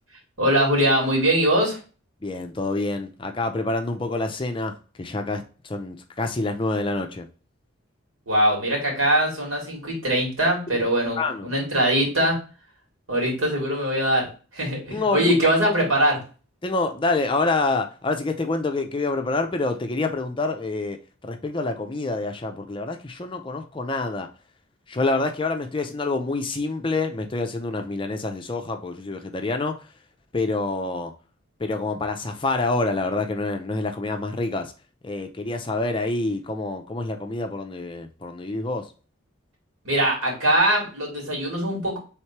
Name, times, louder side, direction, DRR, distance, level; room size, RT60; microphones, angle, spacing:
voice 1, 0.4-1.8 8.3-12.4 13.1-14.3 14.5-16.2 39.8-42.0, right 1 dB, 80° right, -1 dB, 2.4 m, -22 dB
voice 2, 2.2-7.3 10.7-10.8 11.2-11.5 14.9-15.3 15.8-15.9 16.6-21.0 21.2-24.3 24.9-29.9 30.3-31.1 31.6-34.7 35.0-38.9, left 3 dB, 25° left, 5 dB, 0.4 m, -27 dB
3.6 x 3.1 x 4.4 m, 0.35 s
head